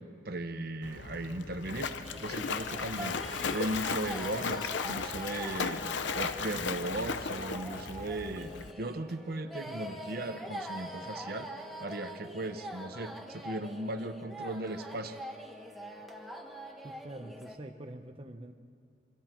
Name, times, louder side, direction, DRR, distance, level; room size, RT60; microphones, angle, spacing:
voice 1, 0.0-5.8 6.1-8.5 8.8-11.5 11.8-15.2, right 1 dB, 50° right, 8 dB, 1.0 m, -37 dB
Splash splatter, 0.8-8.7, left 5 dB, 70° left, 0.8 m, -36 dB
sound 1, 2.0-17.6, equal, ahead, 1.2 m, -44 dB
voice 2, 16.8-18.5, right 1 dB, 30° right, 4 dB, 0.8 m, -45 dB
28.5 x 24.0 x 4.5 m, 2.2 s
head